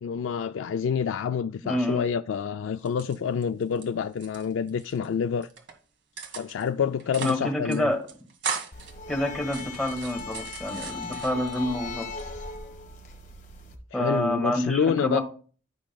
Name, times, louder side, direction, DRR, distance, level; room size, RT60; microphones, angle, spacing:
voice 1, 0.0-5.5 6.4-7.9 13.9-15.2, left 7 dB, 85° left, 0.3 m, -28 dB
voice 2, 1.6-2.0 7.2-8.0 9.1-12.1 13.9-15.2, equal, ahead, 1.7 m, -28 dB
sound 1, 2.8-3.8 4.1-5.1 5.4-5.7 6.2-6.7 7.0-7.4 7.7-7.8 8.1-8.9 9.4-11.6 12.0-12.6, right 5 dB, 70° right, 1.7 m, -37 dB
sound 2, 8.7-13.8, left 4 dB, 45° left, 1.4 m, -38 dB
13.5 x 6.3 x 2.3 m
head